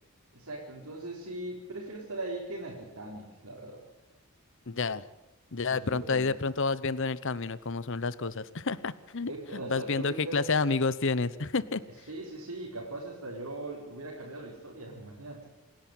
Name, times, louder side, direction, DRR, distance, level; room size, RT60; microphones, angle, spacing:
voice 1, 0.3-3.8 5.7-6.3 9.3-10.4 12.1-15.4, right 2 dB, 75° right, -4 dB, 4.5 m, -40 dB
voice 2, 4.7-5.0 5.5-11.8, left 4 dB, 60° left, 17 dB, 0.9 m, -30 dB
27.5 x 10.5 x 9.0 m, 1.0 s
head